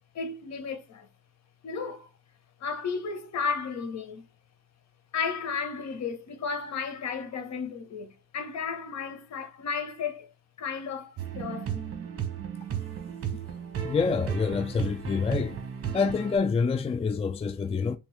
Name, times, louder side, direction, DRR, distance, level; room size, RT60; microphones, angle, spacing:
voice 1, 0.1-1.1 1.6-2.1 2.6-4.3 5.1-10.3 10.6-11.8, left 5 dB, 60° left, 1.3 m, -33 dB
sound 1, 11.2-16.4, right 8 dB, 50° right, 1.2 m, -35 dB
voice 2, 13.8-15.6 15.9-18.0, left 5 dB, 20° left, 0.4 m, -27 dB
3.5 x 3.5 x 3.3 m
cardioid pair, 90°, 30 cm